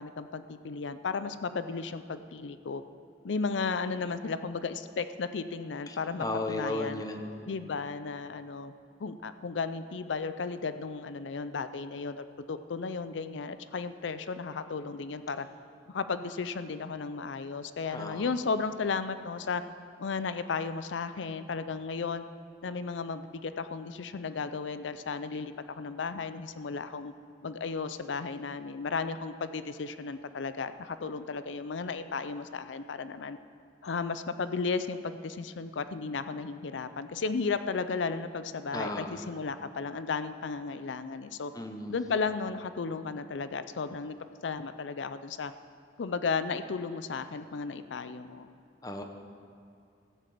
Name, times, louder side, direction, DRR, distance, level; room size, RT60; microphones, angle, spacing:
voice 1, 0.0-2.8 3.2-7.0 7.5-8.7 9.0-15.5 15.9-19.6 20.0-22.2 22.6-27.1 27.4-33.4 33.8-41.5 41.9-44.2 44.4-45.5 46.0-48.5, left 4 dB, 85° left, 12 dB, 0.5 m, -34 dB
voice 2, 6.2-7.3 17.9-18.3 38.7-39.1 41.5-41.9 48.8-49.0, left 2 dB, 20° left, 5 dB, 0.9 m, -34 dB
15.0 x 6.6 x 7.7 m, 2.4 s
head